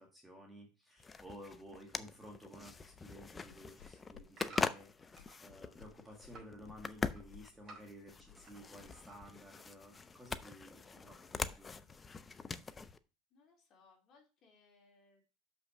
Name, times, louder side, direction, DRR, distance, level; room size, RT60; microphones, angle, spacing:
voice 1, 0.0-11.7, equal, 5° right, 0 dB, 1.4 m, -54 dB
sound 1, 1.0-13.0, left 4 dB, 15° left, 0.4 m, -43 dB
sound 2, 2.8-9.4, left 8 dB, 90° left, 1.5 m, -63 dB
sound 3, 3.7-5.4 5.8-6.6 6.9-8.6 8.9-9.5 9.9-10.0, right 3 dB, 25° right, 4.7 m, -56 dB
voice 2, 13.3-15.2, left 4 dB, 35° left, 0 dB, 3.6 m, -67 dB
6.2 x 5.6 x 5.6 m, 0.33 s
supercardioid pair, 150°, 0 cm